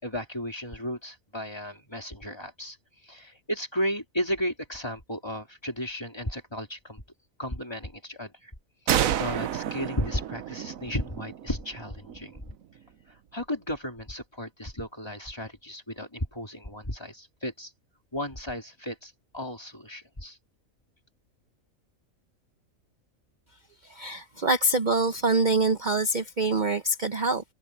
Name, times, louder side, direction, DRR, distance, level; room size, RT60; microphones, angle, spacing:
voice 1, 0.0-2.8 3.0-7.0 7.4-8.5 8.8-12.4 13.1-17.7 18.1-20.4, equal, 20° left, 3.4 m, -34 dB
sound 1, 8.9-12.4, right 10 dB, 80° right, 1.2 m, -30 dB
voice 2, 23.8-27.4, right 2 dB, 40° right, 1.0 m, -25 dB
omnidirectional pair, 1.4 m